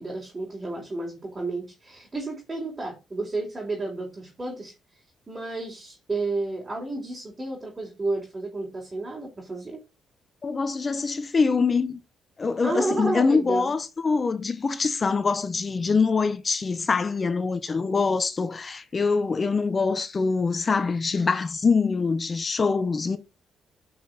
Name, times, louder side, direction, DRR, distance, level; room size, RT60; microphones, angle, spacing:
voice 1, 0.0-4.7 5.3-9.8 12.6-13.7, right 2 dB, 25° right, 4.1 m, -31 dB
voice 2, 10.4-12.0 12.4-23.2, left 4 dB, 35° left, 0.8 m, -24 dB
9.1 x 6.1 x 4.0 m
cardioid pair, 90°, 0 cm